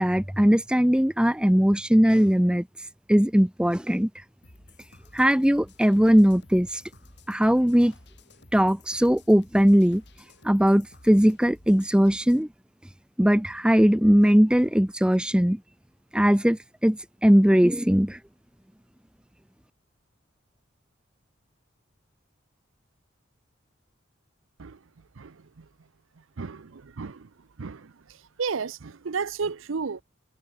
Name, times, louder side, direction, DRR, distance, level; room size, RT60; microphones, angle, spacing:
voice 1, 0.0-2.7 3.1-4.1 5.1-6.8 7.3-7.9 8.5-10.0 10.4-12.5 13.2-15.6 16.1-18.2, equal, 5° right, 0.6 m, -20 dB
sound 1, 4.4-12.4, left 2 dB, 60° left, 7.2 m, -53 dB
voice 2, 25.2-25.7 26.4-27.3 27.6-27.9 28.4-30.0, right 5 dB, 85° right, 0.6 m, -33 dB
head